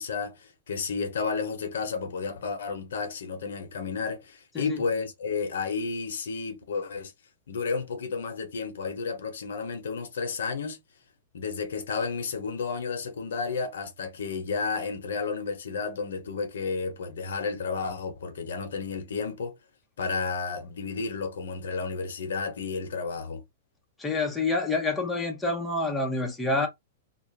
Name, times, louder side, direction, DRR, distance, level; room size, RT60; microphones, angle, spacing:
voice 1, 0.0-7.1 7.5-10.8 11.3-19.6 20.0-23.4, left 5 dB, 85° left, 0.8 m, -32 dB
voice 2, 24.0-26.7, left 2 dB, 5° left, 0.7 m, -27 dB
2.4 x 2.0 x 3.2 m
hypercardioid pair, 145°, 0 cm